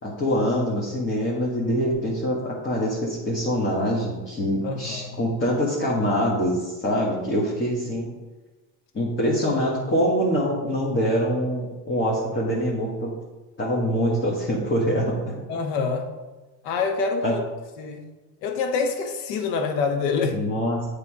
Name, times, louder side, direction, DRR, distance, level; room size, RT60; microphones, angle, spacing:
voice 1, 0.0-8.1 8.9-13.1 13.6-15.4 17.2-17.3 20.3-20.8, equal, 25° left, -4 dB, 1.5 m, -24 dB
voice 2, 4.6-5.2 15.5-16.1 16.6-17.4 17.8-18.0 18.4-20.4, left 4 dB, 85° left, 5 dB, 1.1 m, -26 dB
8.2 x 3.5 x 4.7 m, 1.2 s
supercardioid pair, 90°, 49 cm